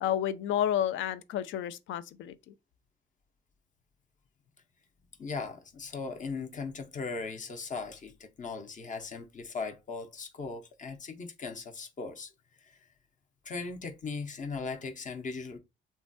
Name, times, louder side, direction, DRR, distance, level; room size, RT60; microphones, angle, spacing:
voice 1, 0.0-2.5, left 10 dB, 75° left, 0.4 m, -31 dB
voice 2, 5.2-12.3 12.7-12.8 13.4-15.6, left 4 dB, 40° left, 0.7 m, -38 dB
3.1 x 2.2 x 2.6 m
cardioid pair, 90°, 20 cm